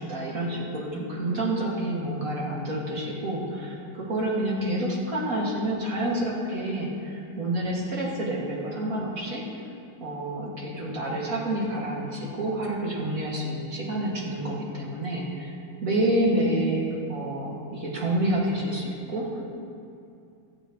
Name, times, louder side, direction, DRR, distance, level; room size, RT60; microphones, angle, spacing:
voice 1, 0.0-9.4 10.0-15.6 15.8-19.4, right 1 dB, 45° right, -4 dB, 2.7 m, -28 dB
24.5 x 9.2 x 3.2 m, 2.5 s
omnidirectional pair, 2.0 m